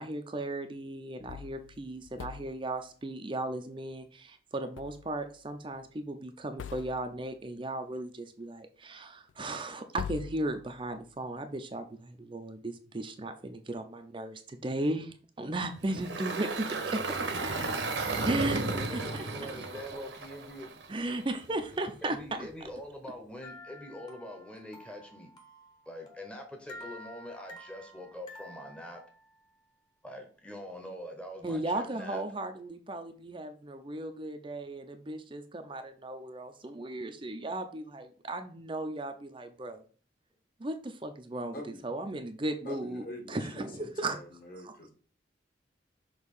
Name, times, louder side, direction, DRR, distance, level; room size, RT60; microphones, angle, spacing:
voice 1, 0.0-16.7 16.9-17.0 18.2-18.6 18.9-19.3 20.9-22.2 31.4-39.8 40.6-41.6 41.8-43.0 43.3-44.2 44.5-44.7, right 2 dB, 25° right, 6 dB, 0.5 m, -36 dB
sound 1, 1.2-2.8 4.8-5.4 5.7-5.8 6.6-7.4 9.3-9.4 10.0-11.2, left 7 dB, 85° left, 0.3 m, -44 dB
Engine, 15.8-21.1, right 3 dB, 75° right, 1.0 m, -34 dB
voice 2, 18.3-20.7 22.0-25.3 25.8-29.0 30.0-32.2, left 1 dB, 5° left, 2 dB, 0.9 m, -44 dB
sound 2, 23.4-29.7, left 1 dB, 25° left, 1.1 m, -51 dB
voice 3, 42.7-44.9, left 1 dB, 50° left, 2 dB, 1.8 m, -44 dB
6.4 x 2.9 x 5.3 m, 0.40 s
head